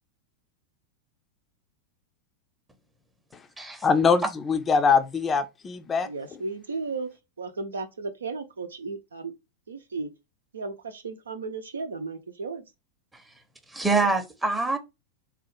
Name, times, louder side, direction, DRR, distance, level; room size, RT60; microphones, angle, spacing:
voice 1, 3.8-6.1, left 5 dB, 20° left, 0.5 m, -22 dB
voice 2, 6.0-7.1 7.4-9.3 9.7-10.1 10.5-12.6, right 4 dB, 70° right, 0.7 m, -34 dB
voice 3, 13.7-14.8, right 3 dB, 10° right, 0.8 m, -25 dB
4.1 x 2.4 x 4.6 m
figure-of-eight pair, 90°, 0 cm